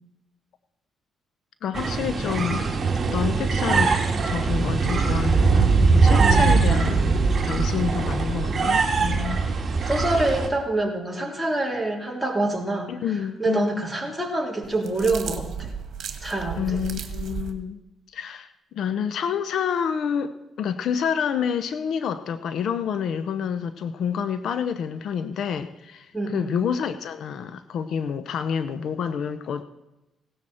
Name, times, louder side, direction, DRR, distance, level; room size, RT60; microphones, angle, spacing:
voice 1, 1.6-2.7 3.1-3.9 4.2-6.9 7.2-9.4 9.8-10.0 12.9-13.9 16.6-17.8 18.1-29.6, left 7 dB, 70° left, 11 dB, 0.7 m, -28 dB
sound 1, 1.7-10.5, right 4 dB, 35° right, 2.3 m, -21 dB
voice 2, 6.2-6.6 9.9-12.9 13.4-15.7 16.2-16.8 26.1-26.6, right 2 dB, ahead, -2 dB, 3.6 m, -26 dB
sound 2, 14.6-17.5, right 7 dB, 65° right, 1.7 m, -34 dB
17.0 x 12.5 x 4.4 m, 0.97 s
cardioid pair, 90°, 0 cm